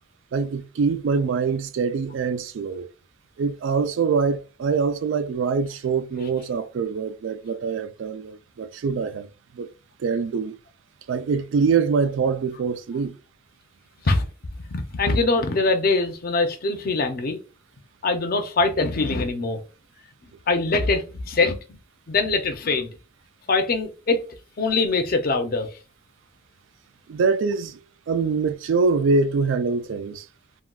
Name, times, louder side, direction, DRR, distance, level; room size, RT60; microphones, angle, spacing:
voice 1, 0.3-2.9 3.4-9.3 9.5-9.7 10.0-10.6 11.1-13.2 27.1-27.8 28.1-30.3, right 5 dB, 75° right, 0.3 m, -24 dB
voice 2, 14.7-17.4 18.0-19.6 20.5-21.8 22.1-22.9 23.5-24.2 24.6-25.7, left 3 dB, 50° left, 0.5 m, -23 dB
3.6 x 2.2 x 2.2 m
head